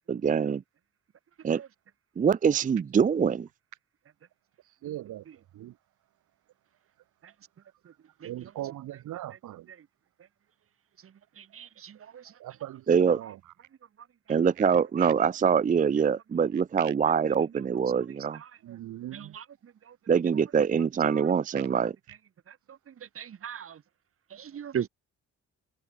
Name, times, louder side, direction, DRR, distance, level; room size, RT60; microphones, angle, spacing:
voice 1, 0.1-0.6 1.4-1.6 2.2-3.5 12.9-13.2 14.3-18.4 20.1-21.9, right 6 dB, 25° right, 0.5 m, -24 dB
voice 2, 4.8-5.8 8.2-9.7 12.2-13.4 14.6-14.7 15.0-15.1 16.8-16.9 18.6-19.4 21.5-21.6, right 14 dB, 80° right, 2.3 m, -40 dB
voice 3, 11.4-12.2 19.1-19.4 21.1-21.2 23.2-23.8 24.3-24.9, right 8 dB, 45° right, 1.5 m, -37 dB
cardioid pair, 90°, 30 cm